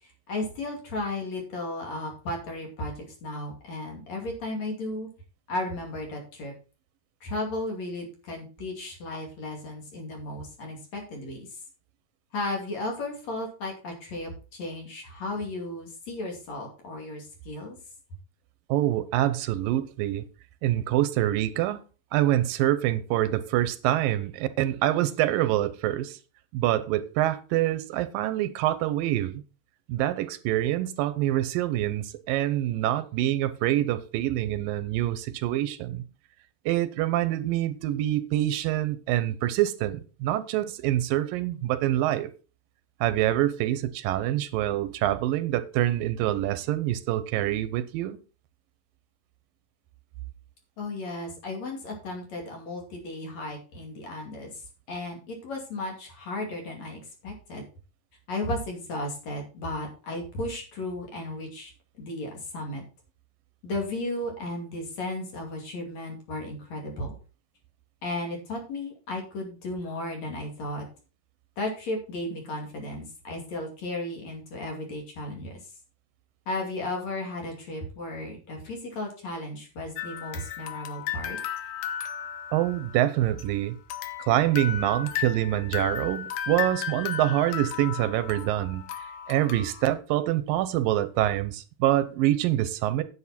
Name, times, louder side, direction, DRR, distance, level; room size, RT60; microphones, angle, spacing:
voice 1, 0.0-5.1 5.5-6.5 7.2-11.5 12.3-17.8 50.8-54.6 54.9-57.6 58.3-61.7 62.0-62.8 63.6-67.1 68.0-70.8 71.6-75.5 76.5-81.4, left 2 dB, 50° left, 3.6 m, -34 dB
voice 2, 18.7-20.2 20.6-21.8 22.1-26.2 26.5-29.4 29.9-36.0 36.7-42.3 43.0-48.2 82.5-83.8 84.2-88.9 89.3-93.0, right 13 dB, 85° right, 2.5 m, -26 dB
sound 1, 80.0-83.5 83.9-89.9, left 9 dB, 75° left, 2.5 m, -35 dB
9.6 x 8.4 x 4.2 m
omnidirectional pair, 4.0 m